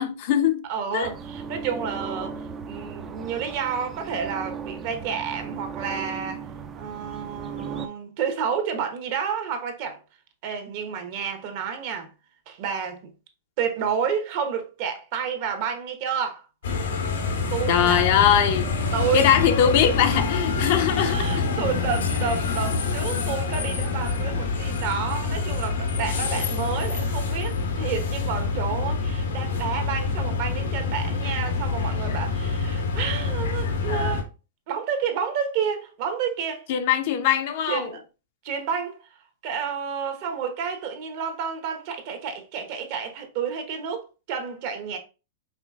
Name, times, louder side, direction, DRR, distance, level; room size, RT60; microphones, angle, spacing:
voice 1, 0.0-0.7 0.9-1.1 17.7-18.6 19.1-21.2 36.7-37.9, left 9 dB, 50° left, 0.6 m, -21 dB
voice 2, 0.7-6.4 6.7-10.0 10.4-12.1 12.5-13.1 13.6-16.4 17.5-18.1 18.9-19.2 20.4-20.5 20.9-34.3 34.7-36.7 37.7-38.0 38.4-39.1 39.4-45.0, right 7 dB, 50° right, 1.0 m, -30 dB
sound 1, 1.0-7.9, right 6 dB, 20° right, 0.4 m, -37 dB
sound 2, 16.6-34.2, left 4 dB, 80° left, 1.0 m, -26 dB
4.9 x 3.2 x 2.3 m
hypercardioid pair, 140°, 0 cm